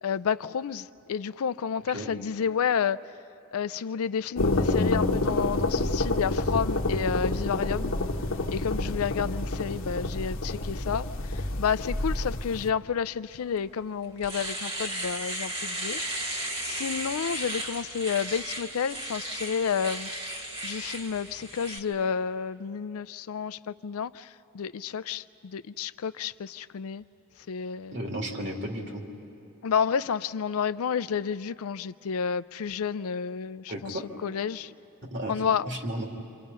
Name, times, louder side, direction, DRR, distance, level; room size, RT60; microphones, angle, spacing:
voice 1, 0.0-3.0 3.5-7.9 8.5-11.1 11.3-16.0 16.3-20.1 20.6-24.3 24.5-27.0 27.5-28.0 29.6-34.7 35.3-35.6, left 7 dB, 75° left, 15 dB, 0.4 m, -30 dB
sound 1, 4.3-12.7, left 2 dB, 60° left, 1.2 m, -28 dB
Domestic sounds home sounds, 13.6-13.7 14.0-21.8, right 1 dB, 25° right, 1.9 m, -35 dB
voice 2, 27.9-29.1 33.7-34.0 35.1-36.1, right 1 dB, 50° right, 1 dB, 2.7 m, -34 dB
28.5 x 26.5 x 5.5 m, 2.9 s
head